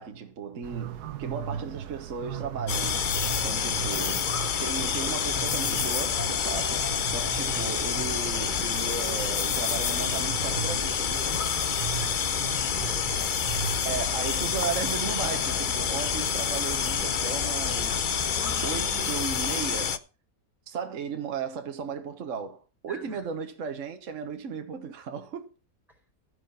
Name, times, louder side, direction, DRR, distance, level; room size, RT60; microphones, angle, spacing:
voice 1, 0.0-3.1 3.4-4.3 4.6-6.8 7.1-11.4 13.8-18.2 18.6-20.0 20.7-25.5, right 6 dB, 50° right, 1.4 m, -35 dB
sound 1, 0.6-19.2, right 9 dB, 70° right, 1.4 m, -39 dB
sound 2, 2.7-20.0, left 7 dB, 65° left, 0.5 m, -28 dB
voice 2, 3.5-3.9 11.9-13.2 22.9-23.3 25.9-26.0, equal, ahead, 4.5 m, -47 dB
15.0 x 6.5 x 5.5 m
omnidirectional pair, 1.8 m